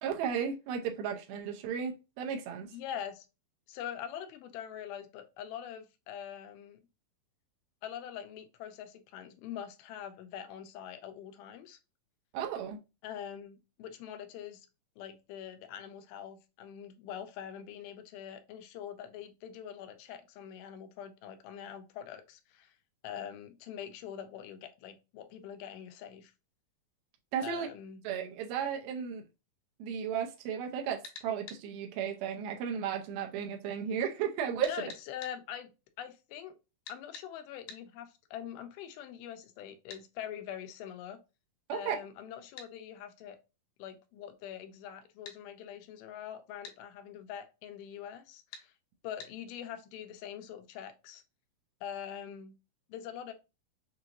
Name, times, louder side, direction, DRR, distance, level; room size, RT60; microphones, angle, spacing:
voice 1, 0.0-2.7 12.3-12.8 27.3-27.7 28.0-29.2 29.8-34.7 41.7-42.0, right 8 dB, 90° right, 2.6 m, -34 dB
voice 2, 2.7-3.3 3.7-6.8 7.8-11.8 13.0-14.7 15.0-22.7 23.0-26.3 27.4-28.0 34.7-35.7 36.0-36.6 36.9-41.2 41.7-43.4 43.8-48.7 49.0-51.2 51.8-52.5 52.9-53.3, left 9 dB, 90° left, 2.7 m, -44 dB
sound 1, 31.0-31.6 34.6-35.4 36.9-37.3 37.7-37.8 39.9-40.1 42.6-42.7 45.3-45.4 46.6-46.8 48.5-48.7 49.2-49.3, left 5 dB, 70° left, 2.6 m, -47 dB
6.6 x 2.9 x 2.5 m
omnidirectional pair, 4.2 m